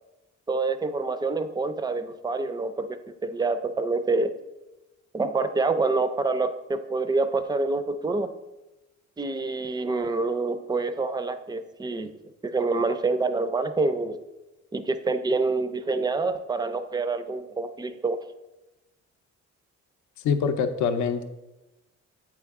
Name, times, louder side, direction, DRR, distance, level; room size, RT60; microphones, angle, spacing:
voice 1, 0.5-4.3 5.1-8.3 9.2-12.1 12.4-14.2 14.7-18.2, right 3 dB, 15° right, 11 dB, 0.4 m, -27 dB
voice 2, 20.2-21.3, left 6 dB, 75° left, 8 dB, 0.6 m, -24 dB
8.3 x 4.6 x 3.5 m, 1.0 s
cardioid pair, 120°, 29 cm